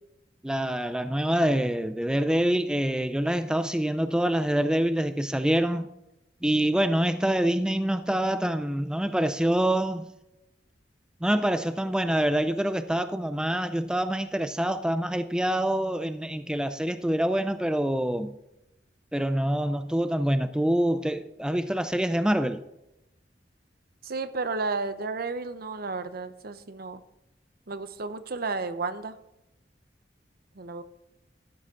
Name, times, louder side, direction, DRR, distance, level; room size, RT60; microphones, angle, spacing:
voice 1, 0.4-5.9 6.4-10.1 11.2-18.3 19.1-22.6, right 1 dB, 5° right, 0.4 m, -26 dB
voice 2, 24.0-27.0 27.7-29.1 30.6-30.8, right 3 dB, 55° right, 0.8 m, -32 dB
13.5 x 8.5 x 3.7 m
head